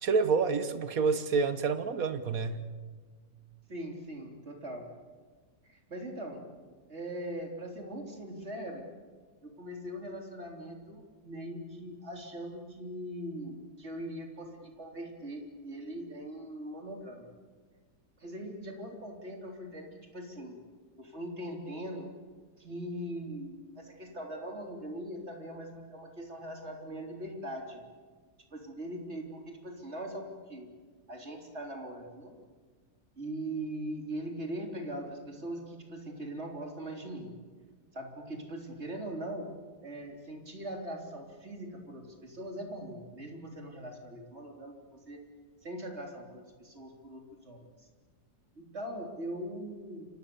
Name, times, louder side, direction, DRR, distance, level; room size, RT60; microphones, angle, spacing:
voice 1, 0.0-2.6, right 5 dB, 60° right, 10 dB, 1.8 m, -28 dB
voice 2, 3.7-4.9 5.6-6.5 6.9-8.9 9.4-17.3 18.2-20.6 21.0-22.1 22.6-27.8 28.5-30.7 31.1-32.4 33.2-37.4 37.9-39.5 39.8-45.2 45.6-47.7 48.6-50.1, right 1 dB, 40° right, 2 dB, 3.9 m, -41 dB
29.0 x 25.5 x 7.1 m, 1.5 s
omnidirectional pair, 1.7 m